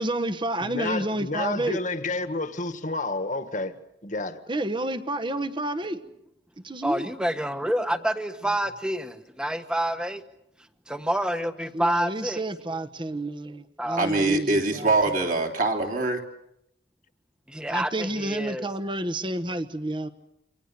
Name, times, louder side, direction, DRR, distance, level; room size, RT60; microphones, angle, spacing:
voice 1, 0.0-1.8 4.5-6.0 6.6-7.1 11.7-15.2 17.7-20.1, right 1 dB, 25° right, 11 dB, 1.3 m, -30 dB
voice 2, 0.6-3.8 4.0-4.4, left 2 dB, 40° left, 9 dB, 1.6 m, -30 dB
voice 3, 6.8-10.2 10.9-12.4 13.8-14.2 17.5-18.7, right 1 dB, 5° right, 8 dB, 1.4 m, -28 dB
voice 4, 14.0-16.2, right 2 dB, 45° right, 2 dB, 3.5 m, -23 dB
28.0 x 25.0 x 6.9 m, 0.81 s
head